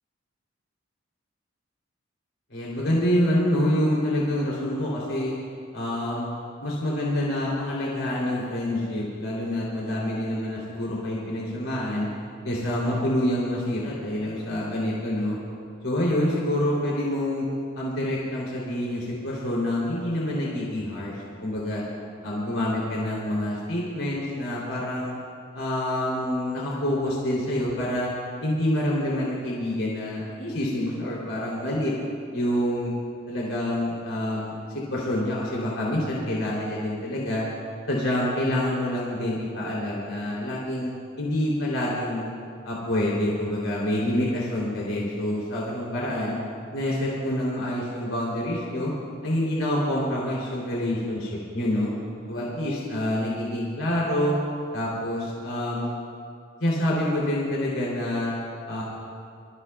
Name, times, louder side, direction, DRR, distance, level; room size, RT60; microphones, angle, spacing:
voice 1, 2.5-5.3 5.7-6.3 6.6-12.1 12.4-15.4 15.8-17.5 17.7-21.8 22.2-25.1 25.5-28.1 28.4-31.9 32.3-32.9 33.3-34.6 34.9-37.4 37.9-42.3 42.6-46.4 46.7-48.9 49.2-51.9 52.3-54.3 54.7-55.9 56.6-58.4 58.7-58.8, left 1 dB, 85° left, -5 dB, 3.4 m, -27 dB
26.5 x 14.5 x 2.4 m, 2.3 s
head